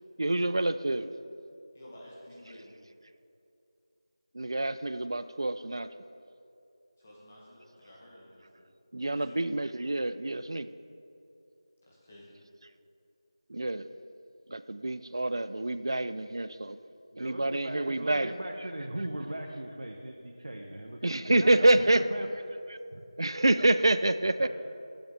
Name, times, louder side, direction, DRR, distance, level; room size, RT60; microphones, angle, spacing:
voice 1, 0.2-1.1 4.4-5.9 8.9-10.7 13.5-13.8 14.5-16.8 17.2-18.3 21.0-22.0 23.2-24.5, right 2 dB, 55° right, 13 dB, 0.3 m, -27 dB
voice 2, 1.7-2.8 7.0-8.7 9.1-9.4 11.9-12.4, left 1 dB, 15° left, -5 dB, 1.0 m, -51 dB
voice 3, 17.1-21.0 21.3-22.3 22.9-23.0 24.4-24.5, right 1 dB, 85° right, 1 dB, 0.8 m, -38 dB
12.5 x 7.1 x 3.5 m, 2.7 s
figure-of-eight pair, 180°, 3 cm